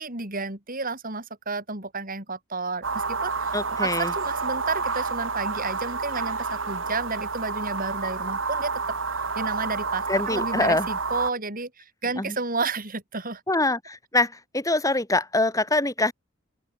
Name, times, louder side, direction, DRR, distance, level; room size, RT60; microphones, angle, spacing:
voice 1, 0.0-3.5 3.8-9.0 9.4-13.4, right 3 dB, 40° right, 6.2 m, -31 dB
sound 1, 2.8-11.3, right 4 dB, 65° right, 2.9 m, -29 dB
voice 2, 3.5-4.1 10.1-10.9 12.2-12.4 13.5-16.1, left 2 dB, 15° left, 6.2 m, -24 dB
head